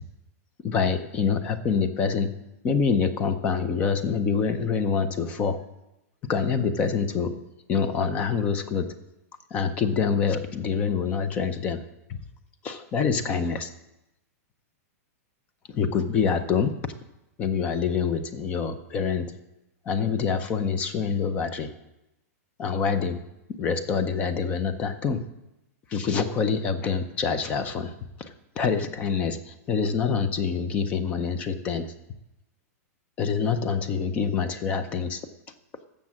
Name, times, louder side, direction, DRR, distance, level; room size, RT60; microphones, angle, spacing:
voice 1, 0.6-2.3 2.6-5.6 6.3-7.4 7.7-8.9 9.5-11.8 12.1-12.2 12.6-13.7 15.7-16.7 17.4-19.3 19.9-21.7 22.6-23.2 23.6-25.2 25.9-27.9 28.2-28.3 28.6-31.9 33.2-35.2, left 6 dB, 15° left, 11 dB, 0.5 m, -26 dB
12.0 x 7.3 x 7.5 m, 0.93 s
supercardioid pair, 180°, 9 cm